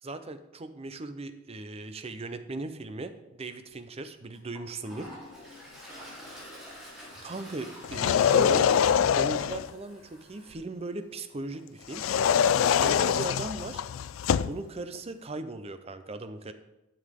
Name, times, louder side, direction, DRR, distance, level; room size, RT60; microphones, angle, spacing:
voice 1, 0.0-5.1 7.2-8.7 9.2-12.0 12.8-13.8 14.4-16.5, right 2 dB, 30° right, 10 dB, 0.6 m, -38 dB
Toilet flush, 3.7-3.8 4.3-10.5, equal, ahead, 3.5 m, -48 dB
sound 1, 7.8-9.7 11.9-14.6, left 8 dB, 75° left, 0.3 m, -24 dB
11.5 x 7.1 x 3.6 m, 0.98 s
head